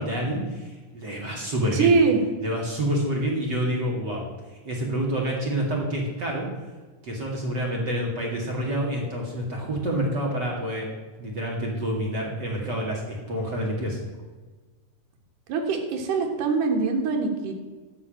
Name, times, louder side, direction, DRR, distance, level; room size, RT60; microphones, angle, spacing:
voice 1, 0.0-1.9 2.4-4.3 4.6-6.5 7.0-10.9 11.2-14.0, equal, 35° right, -1 dB, 2.3 m, -28 dB
voice 2, 1.7-2.2 15.5-17.5, right 4 dB, 85° right, 3 dB, 3.0 m, -23 dB
12.5 x 5.8 x 8.8 m, 1.3 s
omnidirectional pair, 3.6 m